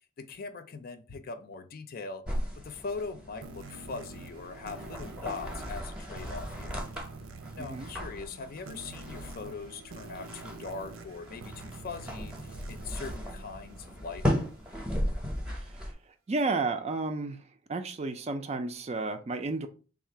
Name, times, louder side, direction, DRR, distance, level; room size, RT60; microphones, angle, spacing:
voice 1, 0.2-2.2 2.6-6.9 7.6-14.4, left 4 dB, 45° left, 0.5 m, -41 dB
sound 1, 2.2-15.9, equal, 5° right, 0.8 m, -37 dB
sound 2, 3.4-14.6, right 3 dB, 90° right, 0.5 m, -47 dB
voice 2, 7.6-7.9 15.6-15.9 16.3-17.4 17.7-19.7, right 3 dB, 30° right, 0.4 m, -32 dB
3.6 x 2.4 x 4.4 m
head